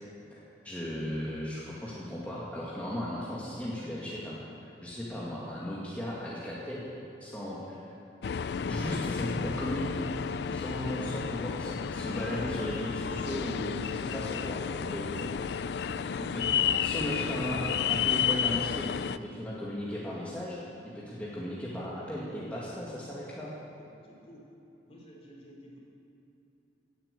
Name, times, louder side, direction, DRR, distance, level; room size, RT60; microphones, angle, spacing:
voice 1, 0.6-4.4 4.8-6.9 7.2-7.9 8.7-10.1 10.5-15.3 16.3-16.5 16.8-17.6 17.9-20.6 20.9-23.5, equal, 10° left, -7 dB, 2.0 m, -36 dB
sound 1, 8.2-19.2, left 7 dB, 65° left, 0.4 m, -31 dB
voice 2, 23.8-24.4 24.9-25.8, equal, 35° left, -2 dB, 3.2 m, -52 dB
16.5 x 8.9 x 8.4 m, 2.9 s
head